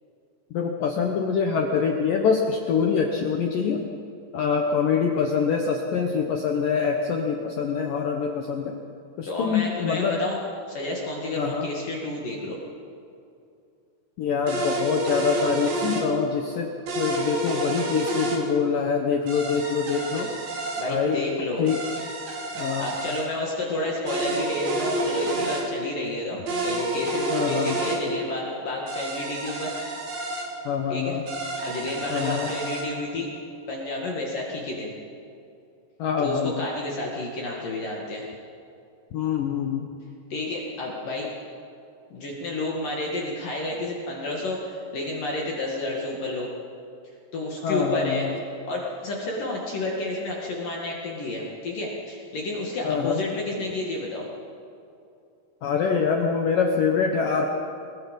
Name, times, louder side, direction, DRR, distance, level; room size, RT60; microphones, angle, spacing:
voice 1, 0.5-3.8 4.3-8.8 9.2-10.2 11.4-11.7 14.2-16.7 16.9-20.3 20.9-21.3 21.6-21.8 22.6-22.9 27.3-27.8 30.7-31.2 32.1-32.5 36.0-36.7 39.1-39.9 47.6-48.4 52.8-53.2 55.6-57.5, left 6 dB, 85° left, 2 dB, 1.9 m, -25 dB
voice 2, 9.3-10.4 10.7-12.6 20.8-21.6 22.8-29.7 30.9-31.2 31.6-33.3 33.7-34.9 36.2-38.2 40.3-41.3 42.1-46.5 47.3-48.3 48.7-54.3, left 2 dB, 50° left, -2 dB, 3.2 m, -30 dB
sound 1, 14.5-16.1 16.9-18.4 19.3-20.9 21.7-23.3 24.1-25.6 26.5-28.0 28.9-30.5 31.3-32.9, right 2 dB, 50° right, 4.6 m, -29 dB
24.5 x 22.0 x 5.5 m, 2.6 s
omnidirectional pair, 5.8 m